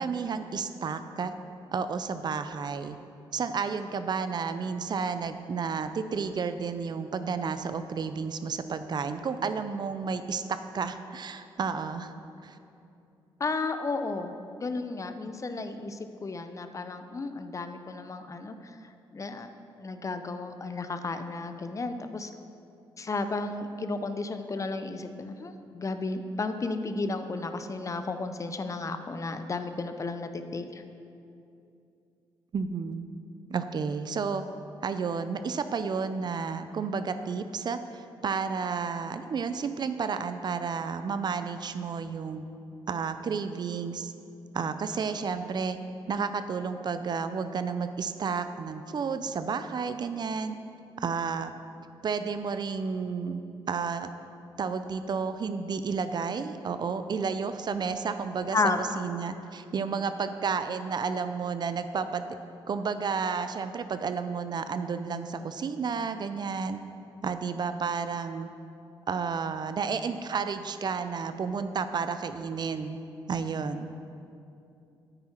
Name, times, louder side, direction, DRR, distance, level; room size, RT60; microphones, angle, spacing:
voice 1, 0.0-1.3 1.7-3.0 3.3-10.4 10.7-12.1 12.4-12.6 32.5-33.1 33.5-34.4 34.8-42.4 42.9-44.1 44.5-45.8 46.1-50.6 51.0-51.5 52.0-53.4 53.7-54.1 54.6-62.2 62.7-66.8 67.2-68.5 69.1-73.0 73.3-73.9, right 5 dB, 50° right, 10 dB, 0.5 m, -31 dB
voice 2, 13.4-18.6 19.1-19.5 19.8-22.3 23.0-30.8 58.5-59.0, left 3 dB, 35° left, 8 dB, 0.7 m, -33 dB
9.4 x 9.0 x 4.4 m, 2.7 s
cardioid pair, 70°, 9 cm